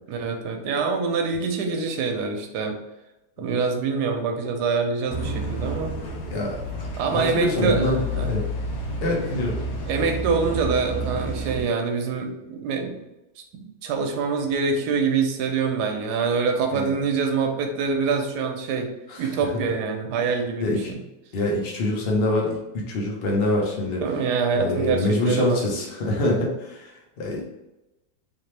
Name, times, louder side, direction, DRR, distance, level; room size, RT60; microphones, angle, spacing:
voice 1, 0.1-2.8 3.4-5.9 7.0-8.3 9.9-12.9 13.5-18.9 19.2-20.7 24.0-25.6, right 5 dB, 75° right, 4 dB, 1.1 m, -25 dB
sound 1, 5.1-11.6, equal, 70° left, 1.6 m, -30 dB
voice 2, 7.0-8.4 9.0-9.6 16.7-16.9 19.1-19.6 20.6-20.9 21.3-24.0 24.5-27.4, left 1 dB, 45° left, -2 dB, 0.9 m, -25 dB
3.6 x 2.9 x 3.2 m, 0.97 s
omnidirectional pair, 1.9 m